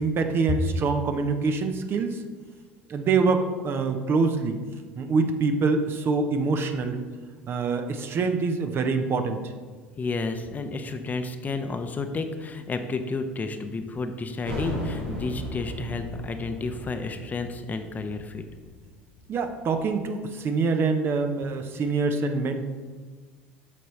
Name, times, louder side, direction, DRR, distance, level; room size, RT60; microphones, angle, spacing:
voice 1, 0.0-2.2 2.9-4.6 5.0-7.0 7.5-9.5 19.3-22.6, right 4 dB, 40° right, 6 dB, 0.8 m, -25 dB
voice 2, 10.0-18.4, left 3 dB, 25° left, 7 dB, 0.7 m, -31 dB
sound 1, 14.4-19.8, equal, 90° right, 2.0 m, -36 dB
8.5 x 6.7 x 3.2 m, 1.4 s
figure-of-eight pair, 70°, 6 cm